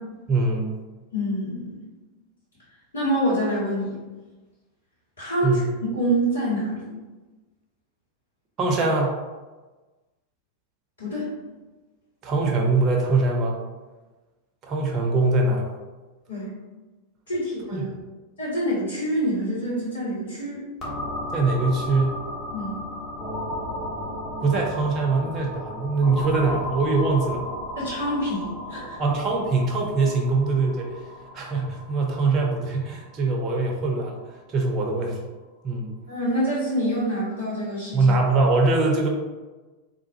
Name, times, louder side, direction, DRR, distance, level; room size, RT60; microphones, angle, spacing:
voice 1, 0.3-0.7 5.4-5.7 8.6-9.2 12.2-13.6 14.7-15.7 17.7-18.0 21.3-22.2 24.4-27.5 29.0-31.0 31.3-34.1 34.5-35.2 35.6-35.9 37.9-39.1, right 3 dB, 30° right, 0 dB, 0.7 m, -22 dB
voice 2, 1.1-1.8 2.9-3.9 5.2-5.6 5.9-6.9 11.0-11.3 16.3-16.5 17.3-17.9 18.4-20.6 22.5-22.8 27.8-29.0 36.1-38.1, equal, 70° left, -9 dB, 1.3 m, -26 dB
sound 1, 20.8-34.4, left 1 dB, 20° left, 1.2 m, -35 dB
3.5 x 2.4 x 2.9 m, 1.2 s
figure-of-eight pair, 90°, 0 cm